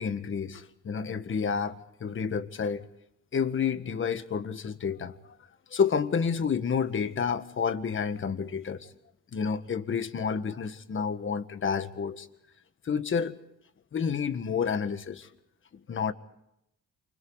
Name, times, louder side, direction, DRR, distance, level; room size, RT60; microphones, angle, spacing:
voice 1, 0.0-2.8 3.3-5.2 5.7-8.9 9.3-12.3 12.8-13.4 13.9-15.3 15.9-16.1, left 6 dB, 40° left, 1.6 m, -29 dB
28.5 x 26.0 x 4.1 m
cardioid pair, 120°, 30 cm